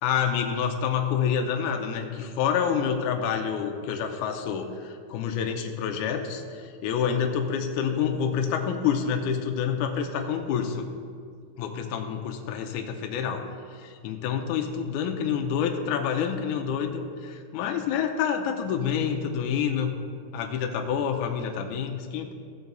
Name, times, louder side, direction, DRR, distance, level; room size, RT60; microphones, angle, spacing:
voice 1, 0.0-10.9 11.6-13.4 13.7-19.9 20.3-22.3, left 7 dB, 90° left, 4 dB, 1.8 m, -28 dB
15.0 x 7.0 x 3.9 m, 2.2 s
omnidirectional pair, 4.4 m